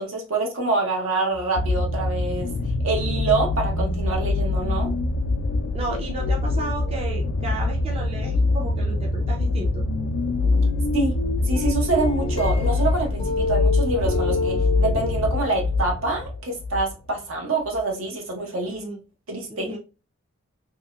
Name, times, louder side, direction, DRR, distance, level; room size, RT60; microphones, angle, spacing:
voice 1, 0.0-2.5 2.8-4.9 10.9-18.8 19.3-19.7, right 3 dB, 75° right, 1.0 m, -26 dB
sound 1, 1.4-16.9 17.8-17.9, left 2 dB, 80° left, 0.4 m, -24 dB
voice 2, 5.7-9.8 18.7-19.0 19.5-19.8, right 2 dB, 30° right, 0.5 m, -33 dB
sound 2, 10.6-11.1 11.6-15.8, left 4 dB, 25° left, 0.5 m, -29 dB
2.9 x 2.8 x 2.3 m
head